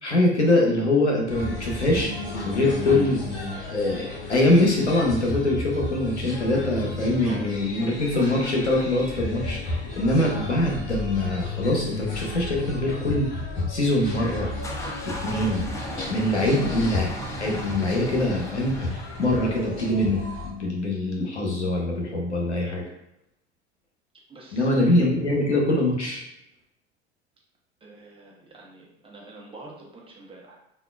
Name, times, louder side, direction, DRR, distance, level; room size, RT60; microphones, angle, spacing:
voice 1, 0.0-2.1 2.5-3.2 3.7-13.3 13.7-14.5 15.2-15.6 16.1-17.1 17.4-18.7 19.2-22.8 24.5-26.2, left 1 dB, 90° left, -1 dB, 0.6 m, -23 dB
sound 1, 1.3-20.5, left 2 dB, 55° left, 1.1 m, -34 dB
sound 2, 14.1-19.7, equal, 10° left, 0.3 m, -36 dB
voice 2, 24.3-24.9 27.8-30.6, right 2 dB, 15° right, -2 dB, 0.7 m, -46 dB
3.6 x 2.2 x 2.2 m, 0.85 s
figure-of-eight pair, 70°, 33 cm